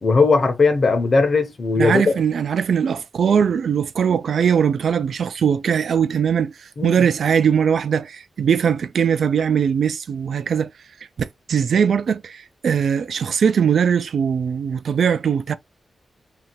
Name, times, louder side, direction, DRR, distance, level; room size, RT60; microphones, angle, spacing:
voice 1, 0.0-2.0 6.8-6.9, left 4 dB, 50° left, 0.9 m, -18 dB
voice 2, 1.8-10.7 11.2-15.5, right 7 dB, 75° right, 0.3 m, -20 dB
2.8 x 2.5 x 2.9 m
wide cardioid pair, 100°, 0 cm